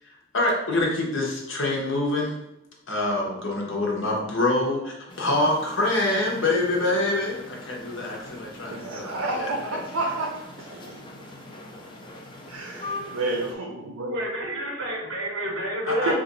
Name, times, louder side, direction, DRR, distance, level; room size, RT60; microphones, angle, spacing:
voice 1, 0.3-2.3 2.9-9.5 16.0-16.1, left 2 dB, 60° left, -1 dB, 0.8 m, -25 dB
sound 1, 5.1-13.5, left 2 dB, 20° left, 0.4 m, -42 dB
voice 2, 8.6-11.2 12.5-14.1 16.0-16.1, right 2 dB, 80° right, -1 dB, 0.6 m, -30 dB
voice 3, 14.1-16.1, equal, 55° right, -2 dB, 1.0 m, -29 dB
2.9 x 2.4 x 3.9 m, 0.89 s
head